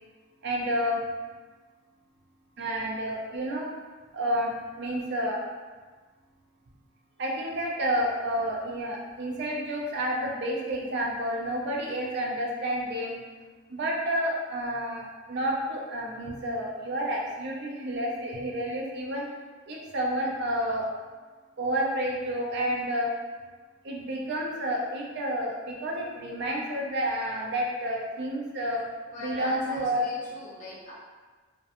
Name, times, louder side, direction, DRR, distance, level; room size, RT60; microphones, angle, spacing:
voice 1, 0.4-1.0 2.6-3.7 4.1-5.4 7.2-13.2 13.7-19.3 19.7-20.9 21.6-23.1 23.8-28.8 29.2-30.1, equal, 50° right, -2 dB, 0.4 m, -30 dB
voice 2, 29.1-30.9, left 2 dB, 35° left, -7 dB, 0.7 m, -40 dB
2.4 x 2.1 x 2.7 m, 1.4 s
head